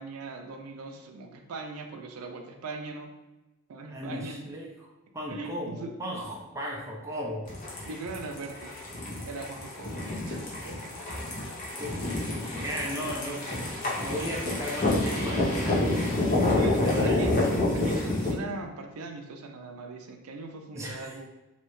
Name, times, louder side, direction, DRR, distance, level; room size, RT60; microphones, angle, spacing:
voice 1, 0.0-3.1 3.7-4.4 5.3-5.9 7.9-8.7 9.3-11.1 16.6-17.4 17.7-21.3, right 3 dB, 85° right, 4 dB, 0.4 m, -40 dB
voice 2, 3.9-4.9 5.1-7.5 11.8-11.9 12.3-17.2 20.7-21.2, equal, 15° right, -2 dB, 0.4 m, -36 dB
sound 1, 7.5-18.3, left 2 dB, 35° left, 0.7 m, -28 dB
3.1 x 2.6 x 3.0 m, 1.1 s
head